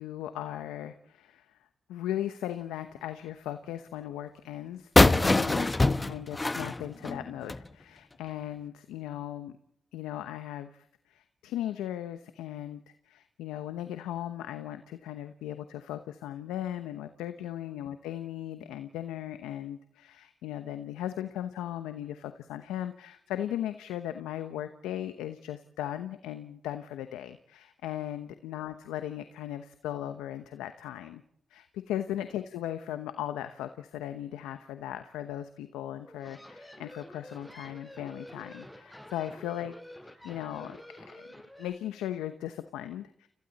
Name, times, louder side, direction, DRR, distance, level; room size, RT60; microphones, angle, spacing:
voice 1, 0.0-1.6 1.9-9.5 9.9-31.2 31.5-39.7 40.2-41.3 41.6-43.3, left 12 dB, 90° left, 10 dB, 0.9 m, -37 dB
sound 1, 5.0-7.7, left 2 dB, 30° left, 1.1 m, -23 dB
sound 2, 35.9-41.7, left 1 dB, 5° left, 6.7 m, -49 dB
30.0 x 23.0 x 4.2 m, 0.76 s
supercardioid pair, 45°, 0 cm